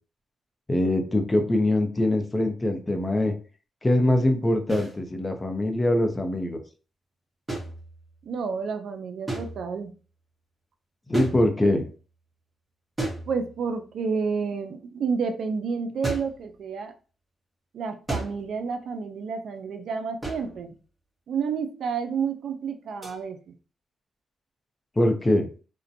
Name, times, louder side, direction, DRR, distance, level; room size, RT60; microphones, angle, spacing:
voice 1, 0.7-3.3 3.8-6.6 11.1-11.8 25.0-25.5, left 1 dB, 20° left, 0.6 m, -23 dB
sound 1, 4.7-5.0 7.5-8.3 9.3-9.9 11.1-11.9 13.0-13.8 16.0-16.5 18.1-18.6 20.2-20.7 23.0-23.2, right 2 dB, 20° right, 1.0 m, -34 dB
voice 2, 8.2-9.9 13.3-16.9 17.7-20.7 21.3-23.5, right 5 dB, 75° right, 0.3 m, -30 dB
2.5 x 2.1 x 2.6 m
cardioid pair, 70°, 0 cm